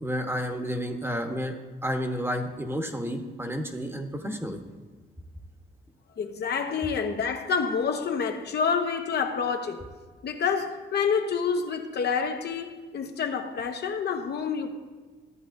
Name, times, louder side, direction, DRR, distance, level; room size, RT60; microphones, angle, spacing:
voice 1, 0.0-1.5 1.8-4.6, equal, 10° right, 1.1 m, -31 dB
voice 2, 6.2-9.9 10.2-14.7, left 6 dB, 55° left, 0.9 m, -28 dB
14.0 x 8.5 x 2.6 m
cardioid pair, 90°, 20 cm